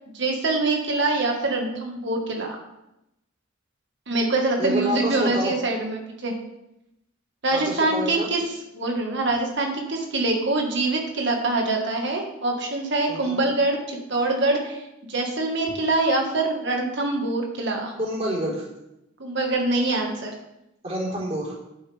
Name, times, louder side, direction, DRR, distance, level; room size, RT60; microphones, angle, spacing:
voice 1, 0.1-2.6 4.1-6.3 7.4-8.4 8.7-17.9 19.2-20.3, right 2 dB, 60° right, 1 dB, 1.7 m, -24 dB
voice 2, 4.6-5.5 7.5-8.3 13.1-13.4 18.0-18.6 20.8-21.6, right 1 dB, 30° right, -6 dB, 4.1 m, -28 dB
11.0 x 9.9 x 3.5 m, 0.89 s
head